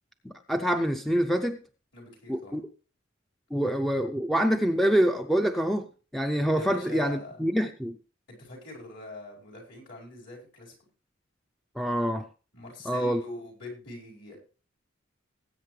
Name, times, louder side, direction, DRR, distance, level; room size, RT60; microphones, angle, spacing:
voice 1, 0.2-1.6 2.3-2.6 3.5-5.9 6.1-8.0 11.8-12.2 12.9-13.2, equal, ahead, 6 dB, 0.5 m, -26 dB
voice 2, 1.9-2.6 6.5-7.4 8.4-10.7 12.5-14.4, left 2 dB, 60° left, -1 dB, 5.0 m, -43 dB
19.5 x 8.3 x 3.3 m, 0.35 s
head